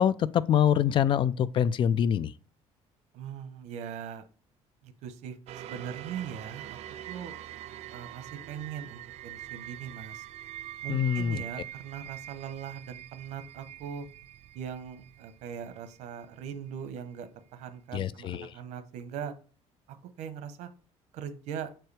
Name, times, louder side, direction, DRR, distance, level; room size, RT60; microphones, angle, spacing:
voice 1, 0.0-2.3 10.9-11.4 17.9-18.5, left 9 dB, 45° left, 0.4 m, -25 dB
voice 2, 3.1-4.2 4.8-6.8 7.1-7.3 7.9-10.3 10.8-14.1 14.5-19.3 19.9-20.7 21.1-21.7, right 8 dB, 85° right, 0.9 m, -40 dB
sound 1, 5.5-16.6 17.1-17.2, right 12 dB, 65° right, 0.4 m, -44 dB
7.4 x 4.6 x 3.3 m
cardioid pair, 125°, 11 cm